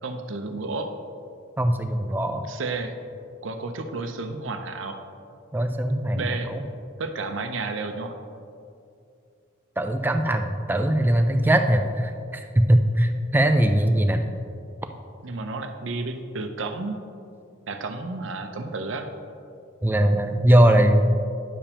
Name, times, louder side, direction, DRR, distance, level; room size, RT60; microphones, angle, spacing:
voice 1, 0.0-0.9 2.5-3.0 3.4-5.0 6.1-6.5 7.0-8.2 13.6-14.0 15.2-17.0 17.7-19.1, right 3 dB, 75° right, 6 dB, 0.6 m, -32 dB
voice 2, 1.6-2.4 5.5-6.2 6.5-6.6 9.8-14.3 19.8-21.1, right 1 dB, 10° right, 6 dB, 0.3 m, -20 dB
10.0 x 6.9 x 2.9 m, 2.4 s
head